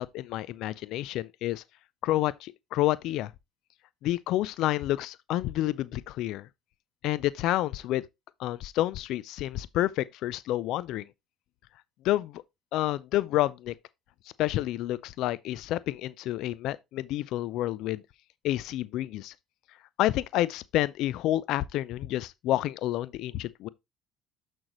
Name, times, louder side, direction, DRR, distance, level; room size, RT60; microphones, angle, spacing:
voice 1, 0.0-1.6 2.0-3.3 4.0-6.5 7.0-8.0 8.4-11.1 12.0-12.4 12.7-13.8 14.4-18.0 18.4-19.3 20.0-23.7, left 15 dB, 70° left, 0.4 m, -29 dB
6.5 x 6.3 x 3.0 m
supercardioid pair, 85°, 0 cm